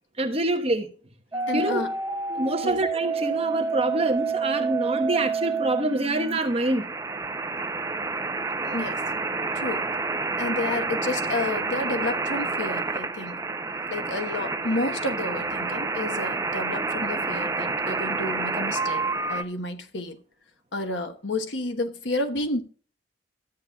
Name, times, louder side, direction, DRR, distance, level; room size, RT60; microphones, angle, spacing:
voice 1, 0.2-0.9 1.5-1.8 2.4-6.9, right 1 dB, 30° right, 1.2 m, -26 dB
sound 1, 1.3-19.4, right 4 dB, 15° right, 0.6 m, -29 dB
voice 2, 1.5-1.9 2.6-2.8 8.7-9.0 9.5-9.9 10.4-13.4 13.9-19.0 19.3-20.2 20.7-22.6, left 2 dB, 75° left, 1.2 m, -30 dB
13.5 x 8.6 x 2.3 m
head